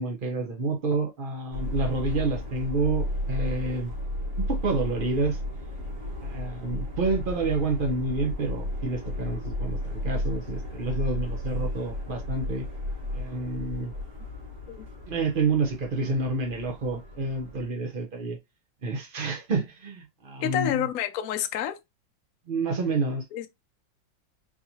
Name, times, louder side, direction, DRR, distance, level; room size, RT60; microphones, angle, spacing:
voice 1, 0.0-3.9 4.4-5.4 6.2-12.7 13.1-13.9 15.1-18.4 18.8-20.9 22.5-23.2, right 3 dB, 80° right, 0.4 m, -29 dB
Subway metro underground, 1.5-17.7, left 1 dB, 45° right, 1.7 m, -33 dB
voice 2, 20.4-21.8 23.3-23.5, left 11 dB, 65° left, 0.9 m, -28 dB
4.5 x 2.9 x 2.7 m
omnidirectional pair, 2.1 m